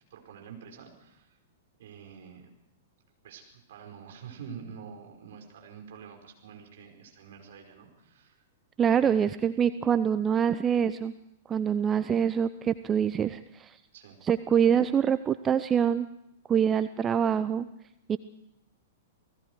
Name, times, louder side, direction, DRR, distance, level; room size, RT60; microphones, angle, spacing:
voice 1, 0.1-1.4 1.8-2.5 3.2-8.4 8.9-9.5 13.9-14.2, right 7 dB, 60° right, 2 dB, 5.1 m, -47 dB
voice 2, 8.8-11.1 11.5-13.8 14.2-16.1 16.5-17.7 18.1-18.2, right 8 dB, 20° right, 12 dB, 0.7 m, -25 dB
29.0 x 19.0 x 4.8 m, 0.80 s
figure-of-eight pair, 105°, 0 cm